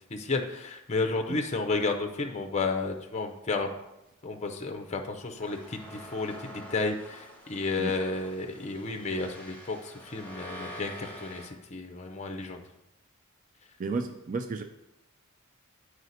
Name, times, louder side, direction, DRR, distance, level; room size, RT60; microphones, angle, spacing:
voice 1, 0.1-3.7 4.2-12.6, left 3 dB, 30° left, 5 dB, 0.6 m, -32 dB
sound 1, 5.4-11.5, equal, 10° left, 1.5 m, -46 dB
voice 2, 13.8-14.6, right 4 dB, 35° right, 7 dB, 0.3 m, -32 dB
7.8 x 4.9 x 4.1 m, 0.89 s
head